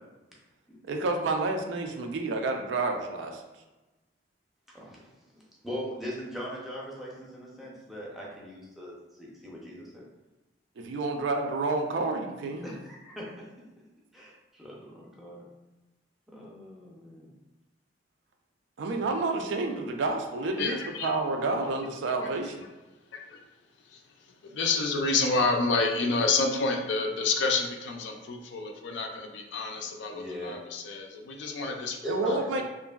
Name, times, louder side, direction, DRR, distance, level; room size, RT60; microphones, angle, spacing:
voice 1, 0.9-3.4 10.8-12.7 18.8-22.7 32.0-32.6, right 3 dB, 90° right, 4 dB, 0.4 m, -29 dB
voice 2, 4.7-10.0 12.6-13.5 14.1-15.5 16.3-17.3 30.1-30.6 32.0-32.6, equal, ahead, -5 dB, 0.5 m, -40 dB
voice 3, 20.6-21.1 23.1-23.4 23.9-24.0 24.4-32.0, left 3 dB, 75° left, 3 dB, 0.4 m, -28 dB
2.8 x 2.5 x 2.3 m, 1.1 s
head